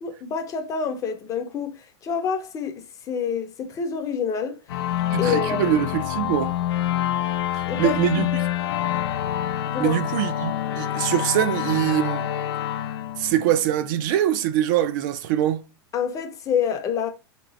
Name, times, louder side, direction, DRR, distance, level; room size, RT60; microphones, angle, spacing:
voice 1, 0.0-4.6 5.2-5.7 7.7-8.2 9.7-10.0 15.9-17.1, left 6 dB, 25° left, 0.6 m, -27 dB
sound 1, 4.7-14.0, left 11 dB, 85° left, 0.5 m, -27 dB
voice 2, 5.1-6.6 7.5-8.3 9.8-12.3 13.2-15.6, right 11 dB, 50° right, 0.4 m, -23 dB
3.1 x 3.0 x 3.9 m
hypercardioid pair, 135°, 13 cm